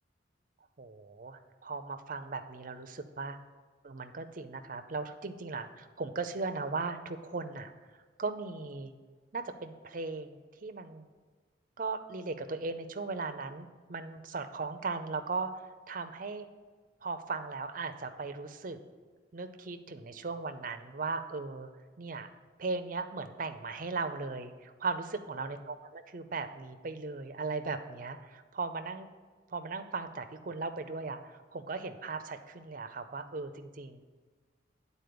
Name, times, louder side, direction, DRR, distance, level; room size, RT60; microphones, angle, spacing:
voice 1, 0.8-3.4 3.8-7.7 8.2-8.9 9.3-11.1 11.8-16.5 17.0-18.8 19.3-21.7 22.0-22.3 22.6-29.1 29.5-34.0, right 4 dB, 45° right, 9 dB, 0.6 m, -38 dB
9.3 x 4.2 x 6.8 m, 1.4 s
head